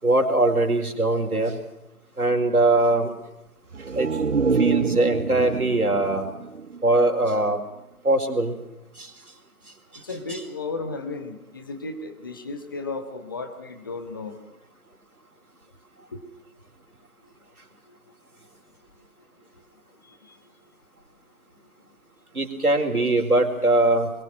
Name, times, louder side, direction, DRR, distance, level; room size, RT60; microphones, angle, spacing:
voice 1, 0.0-1.6 2.2-3.1 3.9-4.1 4.5-6.3 6.8-7.6 8.0-8.6 9.0-9.1 10.3-10.4 22.3-24.1, right 2 dB, 75° right, 3 dB, 4.8 m, -21 dB
sound 1, 3.7-7.4 7.8-7.9, right 5 dB, 55° right, 0.8 m, -26 dB
voice 2, 10.0-14.3 16.1-16.2 17.2-17.4 17.8-18.1 19.0-19.1 19.4-19.6 20.0-20.4, left 3 dB, 15° left, 6 dB, 1.3 m, -35 dB
22.5 x 22.0 x 6.2 m, 0.89 s
figure-of-eight pair, 160°, 44 cm